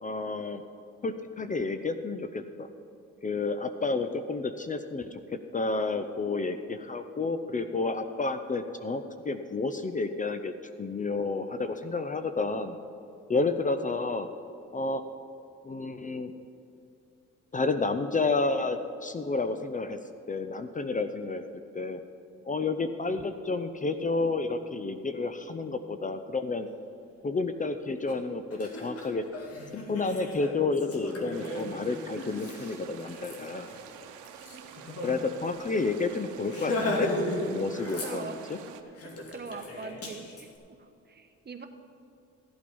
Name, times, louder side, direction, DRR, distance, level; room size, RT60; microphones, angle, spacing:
voice 1, 0.0-0.6 1.0-2.7 3.2-5.2 5.5-12.8 13.3-14.3 14.7-15.0 15.6-16.3 17.5-20.0 20.3-21.4 21.7-22.0 22.5-26.7 27.2-29.2 29.9-33.7 35.0-37.1 37.5-38.6, left 3 dB, 25° left, 9 dB, 0.6 m, -30 dB
Laughter, 28.1-28.2 28.5-35.1 35.5-35.6 35.9-36.1 36.5-37.4 37.7-38.5 39.0-40.4, left 2 dB, 50° left, 2.4 m, -35 dB
sound 1, 31.3-38.8, right 8 dB, 90° right, 0.9 m, -48 dB
voice 2, 38.0-38.4 38.7-38.9 39.3-40.5 40.8-41.7, right 4 dB, 35° right, 6 dB, 1.2 m, -42 dB
14.5 x 8.4 x 5.4 m, 2.6 s
cardioid pair, 90°, 30 cm